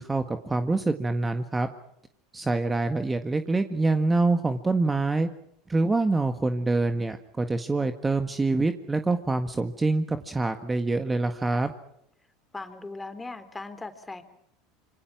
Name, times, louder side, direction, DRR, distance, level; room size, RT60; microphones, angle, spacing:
voice 1, 0.0-1.7 2.3-5.3 5.7-11.7, right 3 dB, 15° right, 8 dB, 1.7 m, -25 dB
voice 2, 12.5-14.2, left 3 dB, 15° left, 10 dB, 3.4 m, -38 dB
27.0 x 25.0 x 6.1 m, 0.72 s
hypercardioid pair, 80°, 0 cm